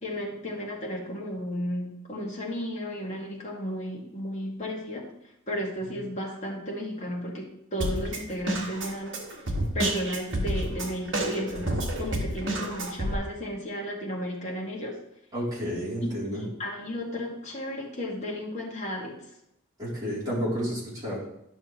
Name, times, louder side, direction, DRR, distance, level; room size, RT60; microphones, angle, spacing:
voice 1, 0.0-5.1 5.5-9.2 9.7-14.9 16.3-19.2, equal, 35° left, -3 dB, 1.9 m, -34 dB
Drum kit, 7.8-13.2, right 1 dB, 65° right, 1.6 m, -29 dB
voice 2, 15.3-16.4 19.8-21.2, equal, 20° right, -8 dB, 3.3 m, -31 dB
10.5 x 6.1 x 3.1 m, 0.82 s
head